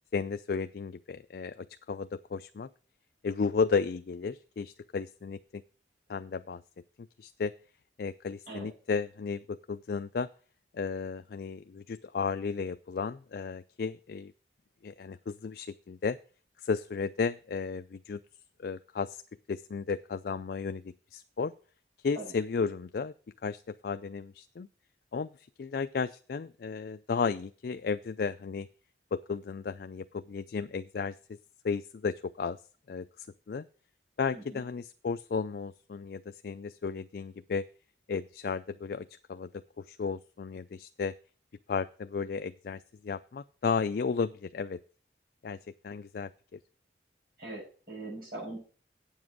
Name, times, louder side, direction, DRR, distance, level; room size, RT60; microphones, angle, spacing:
voice 1, 0.1-2.7 3.2-5.6 6.1-6.6 7.2-7.5 8.0-10.3 10.7-14.3 14.8-16.2 16.6-18.2 18.6-19.2 19.5-21.5 22.0-23.1 23.4-24.7 25.1-25.3 25.6-28.7 29.1-31.1 31.6-32.6 32.9-33.6 34.2-37.6 38.1-39.5 39.8-41.1 41.7-44.8 45.4-45.6 45.8-46.3, left 5 dB, 55° left, 10 dB, 0.4 m, -33 dB
voice 2, 47.4-48.6, right 2 dB, 55° right, -5 dB, 6.9 m, -41 dB
8.6 x 7.4 x 6.1 m, 0.40 s
head